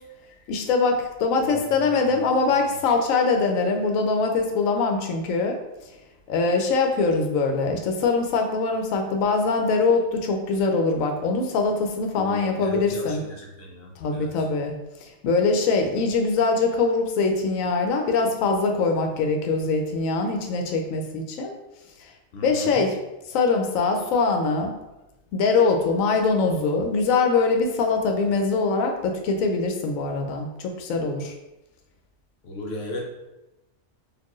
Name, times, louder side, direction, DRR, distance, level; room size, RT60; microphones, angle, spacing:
voice 1, 0.5-5.6 6.3-13.2 14.0-14.7 15.2-21.5 22.4-23.0 23.3-24.7 25.3-31.3, left 4 dB, 80° left, 3 dB, 1.0 m, -23 dB
voice 2, 1.4-2.4 12.1-14.5 22.3-22.8 32.4-33.1, left 1 dB, 60° left, -1 dB, 0.8 m, -37 dB
4.3 x 2.6 x 3.0 m, 0.96 s
omnidirectional pair, 1.4 m